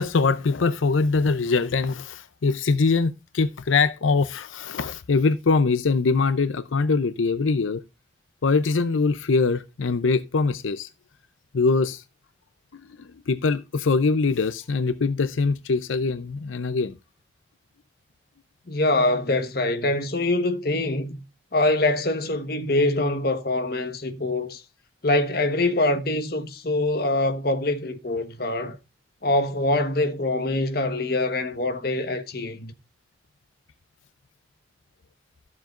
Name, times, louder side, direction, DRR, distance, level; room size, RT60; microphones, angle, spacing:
voice 1, 0.0-7.8 8.4-10.9 11.5-12.0 13.0-16.9, left 4 dB, 90° left, 0.6 m, -23 dB
voice 2, 18.7-21.2 21.5-24.6 25.0-28.8 29.2-32.7, left 2 dB, 50° left, 1.2 m, -24 dB
14.0 x 7.4 x 2.5 m
head